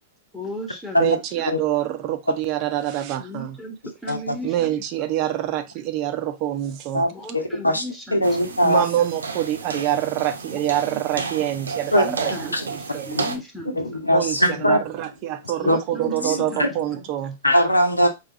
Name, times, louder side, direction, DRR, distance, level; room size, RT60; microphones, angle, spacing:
voice 1, 0.3-1.1 1.3-1.6 1.9-2.0 3.2-4.8 7.1-8.3 10.5-11.0 11.8-14.0 15.6-16.7, equal, 5° left, 1.2 m, -36 dB
voice 2, 1.0-3.6 4.4-7.1 8.6-12.3 12.6-13.1 14.1-17.4, right 12 dB, 40° right, 0.6 m, -26 dB
voice 3, 4.1-4.4 6.9-7.1 7.3-7.8 8.1-8.8 11.9-12.6 13.1-13.3 13.6-14.8 15.6-15.8 16.2-16.7 17.4-18.1, equal, 90° left, 0.8 m, -21 dB
sound 1, 8.2-13.4, right 4 dB, 75° right, 0.7 m, -32 dB
4.6 x 2.4 x 3.8 m
figure-of-eight pair, 100°, 0 cm